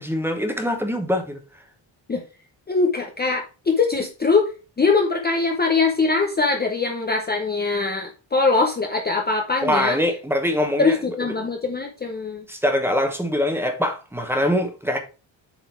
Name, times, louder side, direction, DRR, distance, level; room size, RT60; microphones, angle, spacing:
voice 1, 0.0-1.4 9.6-10.9 12.5-15.0, left 1 dB, 5° right, 1.1 m, -23 dB
voice 2, 2.7-4.5 4.8-10.0 10.8-12.4, left 4 dB, 20° left, 0.7 m, -22 dB
7.9 x 3.9 x 4.6 m
wide cardioid pair, 155°, 45 cm